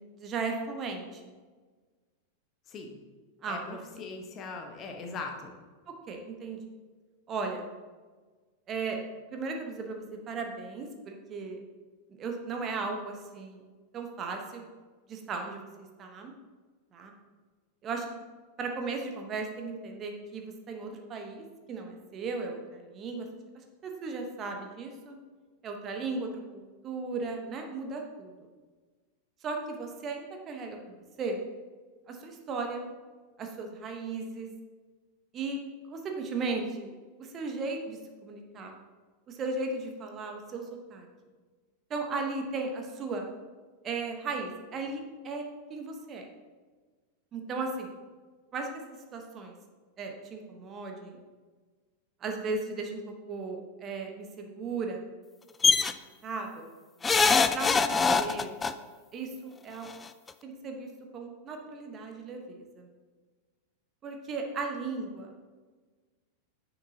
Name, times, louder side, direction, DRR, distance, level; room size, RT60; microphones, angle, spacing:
voice 1, 0.1-1.3 3.4-3.6 6.1-6.6 7.3-7.6 8.7-9.0 9.3-11.6 12.2-13.7 13.9-14.6 15.1-15.6 16.0-16.3 16.9-17.1 17.8-18.2 18.6-23.3 23.8-25.2 25.6-28.3 29.4-31.4 32.1-32.9 33.4-34.5 35.3-36.9 37.2-38.8 39.3-41.1 41.9-43.3 43.8-45.4 45.7-46.2 47.3-47.9 48.5-48.7 49.1-49.5 50.0-51.2 52.2-53.0 53.3-55.1 55.7-55.9 56.2-56.6 57.5-58.5 59.1-59.9 60.4-62.9 64.0-65.6, right 3 dB, 30° right, 3 dB, 1.1 m, -36 dB
voice 2, 2.7-3.0 3.4-5.5, left 4 dB, 30° left, 3 dB, 1.1 m, -40 dB
sound 1, 55.6-55.9 57.0-58.7 59.9-60.0 60.3-60.4, left 4 dB, 15° left, 0.4 m, -23 dB
10.0 x 7.0 x 2.8 m, 1.4 s
figure-of-eight pair, 90°, 0 cm